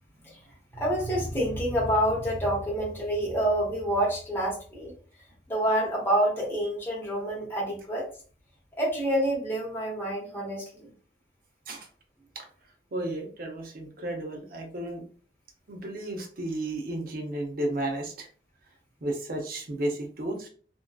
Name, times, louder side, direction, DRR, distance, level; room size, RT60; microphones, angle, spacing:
voice 1, 0.7-4.9 5.5-8.1 8.8-10.9, right 1 dB, 15° left, -5 dB, 0.8 m, -27 dB
voice 2, 12.9-15.0 15.7-18.3 19.0-20.5, right 1 dB, 55° right, 3 dB, 0.6 m, -33 dB
2.6 x 2.2 x 2.3 m, 0.42 s
head